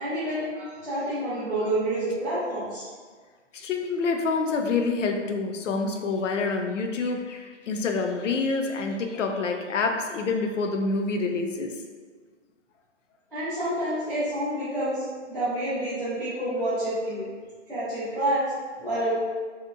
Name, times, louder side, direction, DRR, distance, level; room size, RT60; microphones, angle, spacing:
voice 1, 0.0-2.8 13.3-17.3 17.7-18.4 18.8-19.2, right 1 dB, ahead, -25 dB, 0.5 m, -28 dB
voice 2, 3.5-11.7, left 4 dB, 80° left, 4 dB, 0.5 m, -27 dB
2.8 x 2.3 x 2.5 m, 1.5 s
hypercardioid pair, 175°, 37 cm